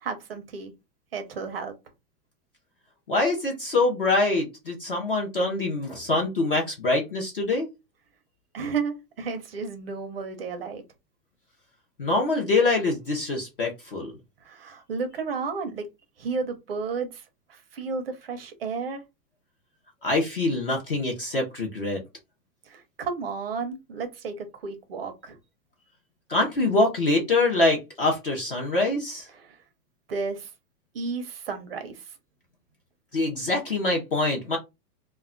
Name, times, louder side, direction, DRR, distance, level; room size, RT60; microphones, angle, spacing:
voice 1, 0.0-0.7 1.1-1.8 8.5-10.8 14.4-15.9 16.2-17.2 17.5-19.0 22.7-25.4 29.3-29.6 30.1-30.5 30.9-32.1, right 5 dB, 40° right, 0.4 m, -32 dB
voice 2, 3.1-7.7 12.0-14.1 20.0-22.0 26.3-29.3 33.1-34.6, left 2 dB, 35° left, 0.4 m, -24 dB
2.2 x 2.1 x 3.6 m
supercardioid pair, 170°, 49 cm